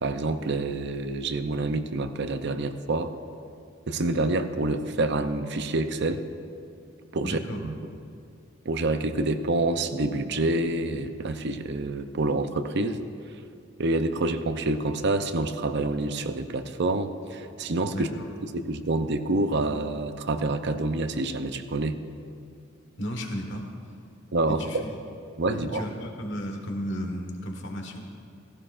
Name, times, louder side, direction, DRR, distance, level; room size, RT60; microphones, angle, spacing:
voice 1, 0.0-3.1 3.9-6.2 7.1-7.7 8.7-13.0 13.8-18.1 18.4-22.0 24.3-24.8 25.4-25.8, right 2 dB, 60° right, 9 dB, 0.7 m, -27 dB
voice 2, 7.2-7.6 17.9-18.3 23.0-23.7 24.5-25.0 25.5-28.1, equal, 65° left, 3 dB, 1.5 m, -34 dB
17.0 x 15.5 x 2.5 m, 2.5 s
head